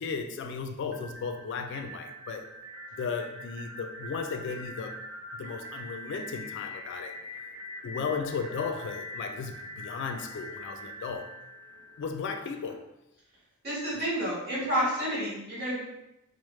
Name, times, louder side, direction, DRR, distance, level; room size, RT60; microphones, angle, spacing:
voice 1, 0.0-2.5 3.0-5.0 5.3-7.2 7.8-11.3 12.0-12.8 13.9-14.0, left 5 dB, 60° left, 6 dB, 0.3 m, -35 dB
sound 1, 0.9-12.7, left 1 dB, 70° right, 0.6 m, -43 dB
voice 2, 13.6-15.8, equal, 50° right, -8 dB, 1.4 m, -30 dB
3.1 x 2.0 x 3.0 m, 0.88 s
head